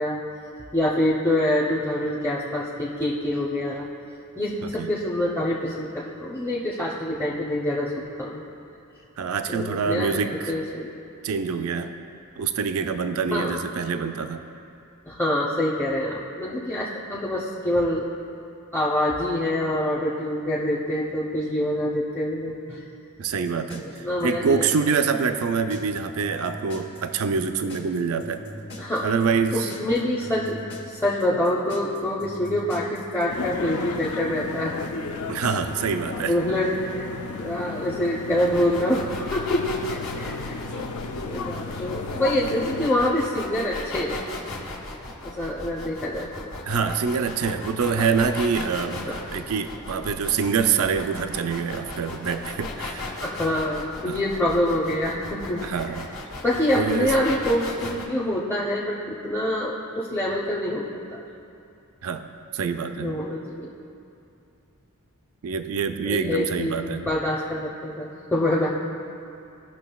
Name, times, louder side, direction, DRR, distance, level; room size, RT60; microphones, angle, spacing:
voice 1, 0.0-8.4 9.5-10.1 10.5-10.9 11.3-11.4 13.3-13.6 15.1-18.0 18.7-22.8 23.7-24.7 28.8-29.1 29.5-30.6 30.9-34.7 36.3-37.1 37.4-40.8 41.2-44.2 45.2-46.3 48.0-48.1 48.9-49.1 53.2-55.9 56.4-61.2 63.0-63.7 66.0-68.7, left 1 dB, 10° left, -7 dB, 0.7 m, -26 dB
voice 2, 9.2-10.5 11.2-11.9 12.4-14.4 23.2-28.4 29.0-29.7 35.3-36.4 46.7-53.1 54.1-54.2 55.6-56.1 56.7-57.1 62.0-62.2 62.5-63.2 65.4-67.1, right 5 dB, 70° right, 8 dB, 0.4 m, -25 dB
sound 1, 23.2-33.3, equal, 50° left, 1.3 m, -41 dB
sound 2, 33.3-42.9, left 3 dB, 80° left, 0.6 m, -34 dB
sound 3, 38.4-58.0, left 2 dB, 65° left, 1.5 m, -37 dB
16.5 x 5.9 x 2.3 m, 2.6 s
head